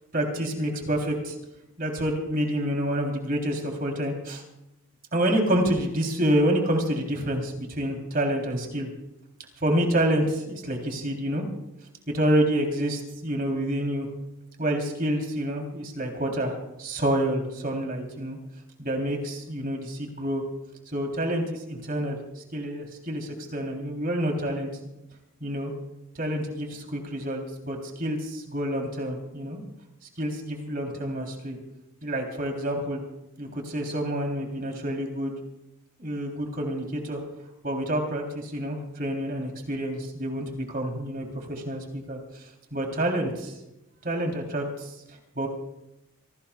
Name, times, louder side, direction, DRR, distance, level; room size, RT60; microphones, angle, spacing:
voice 1, 0.1-1.3 1.8-4.4 5.1-8.9 9.6-11.5 12.1-14.1 14.6-18.4 18.8-20.4 20.9-24.7 25.4-25.7 26.2-29.6 30.2-31.6 32.0-33.0 33.4-35.4 36.0-37.2 37.6-43.6 44.0-45.5, right 1 dB, 40° right, 2 dB, 3.5 m, -28 dB
27.0 x 18.5 x 2.4 m, 0.93 s
head